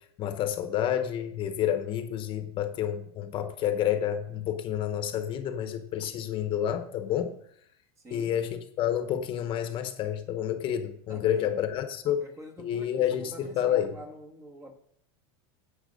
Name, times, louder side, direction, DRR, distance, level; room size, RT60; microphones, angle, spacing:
voice 1, 0.2-7.3 8.1-12.2 12.6-14.0, left 10 dB, 40° left, 1.1 m, -29 dB
voice 2, 8.0-8.5 11.1-11.5 12.1-14.7, right 1 dB, 20° right, 2.0 m, -46 dB
10.0 x 8.0 x 5.3 m
supercardioid pair, 135°, 13 cm